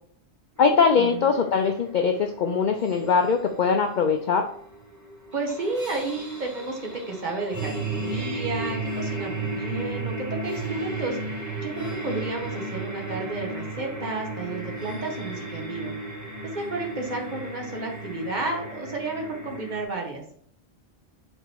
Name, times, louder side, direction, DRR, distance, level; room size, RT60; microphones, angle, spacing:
voice 1, 0.6-4.5, left 5 dB, 55° left, 5 dB, 0.6 m, -21 dB
sound 1, 0.6-19.8, right 2 dB, 15° right, 1.5 m, -35 dB
voice 2, 5.3-11.2 11.6-15.9 16.4-20.2, right 2 dB, 45° right, 1 dB, 1.4 m, -32 dB
5.4 x 4.0 x 4.5 m, 0.63 s
omnidirectional pair, 1.1 m